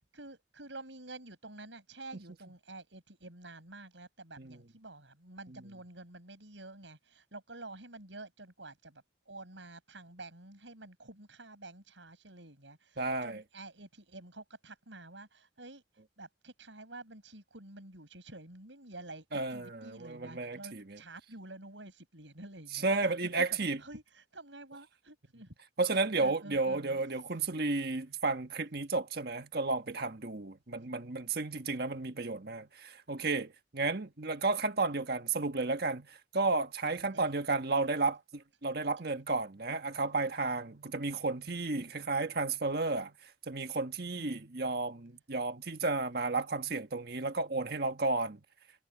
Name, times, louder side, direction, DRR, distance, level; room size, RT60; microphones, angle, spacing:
voice 1, 0.0-23.5 23.8-25.5 25.9-27.3 37.1-37.4 41.8-42.0 44.1-44.5, right 2 dB, 80° right, 7.8 m, -49 dB
voice 2, 13.0-13.4 19.3-20.8 22.8-23.8 25.8-43.1 43.5-48.4, right 3 dB, 55° right, 1.5 m, -32 dB
head